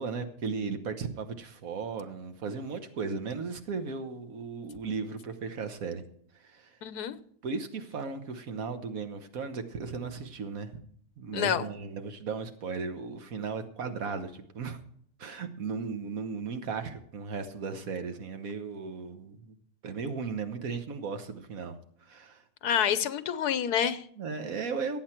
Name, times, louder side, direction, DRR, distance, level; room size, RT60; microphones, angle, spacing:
voice 1, 0.0-6.0 6.3-6.8 7.4-10.7 11.2-14.8 15.2-19.5 19.8-22.4 24.2-25.0, right 5 dB, 60° right, 1.5 m, -36 dB
voice 2, 6.8-7.2 11.3-11.7 22.6-24.1, left 9 dB, 80° left, 1.3 m, -28 dB
17.5 x 8.3 x 4.5 m
omnidirectional pair, 1.7 m